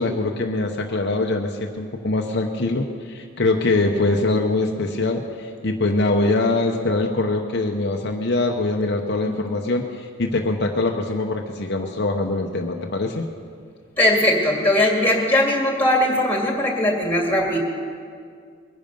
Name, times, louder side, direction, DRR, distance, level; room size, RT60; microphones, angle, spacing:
voice 1, 0.0-13.2, left 2 dB, 55° left, 2 dB, 0.8 m, -23 dB
voice 2, 14.0-17.6, left 1 dB, 10° left, 0 dB, 2.2 m, -19 dB
22.0 x 10.5 x 5.4 m, 2.2 s
head